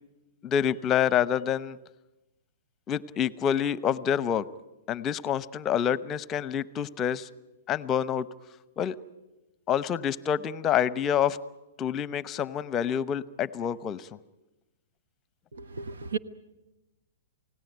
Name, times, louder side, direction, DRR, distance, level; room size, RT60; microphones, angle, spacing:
voice 1, 0.4-1.8 2.9-4.5 4.9-7.3 7.7-8.3 8.8-9.0 9.7-11.4 11.8-14.1, left 9 dB, 25° left, 17 dB, 0.8 m, -27 dB
voice 2, 15.5-16.2, right 5 dB, 80° right, 11 dB, 1.2 m, -34 dB
28.0 x 17.5 x 9.3 m, 1.0 s
hypercardioid pair, 125°, 0 cm